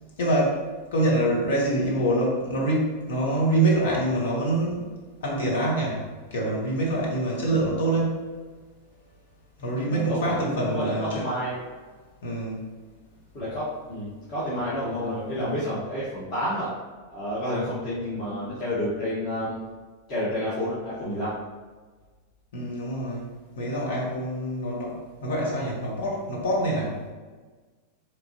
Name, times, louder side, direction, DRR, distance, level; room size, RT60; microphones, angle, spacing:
voice 1, 0.2-0.6 0.9-4.9 5.2-6.0 6.3-8.2 9.6-11.2 12.2-12.7 22.5-23.3 23.6-27.0, right 1 dB, 60° left, -3 dB, 1.1 m, -25 dB
voice 2, 9.8-11.6 13.3-16.7 17.1-19.5 20.1-21.3, equal, 40° left, -10 dB, 1.3 m, -29 dB
4.0 x 3.1 x 2.9 m, 1.4 s
figure-of-eight pair, 90°, 0 cm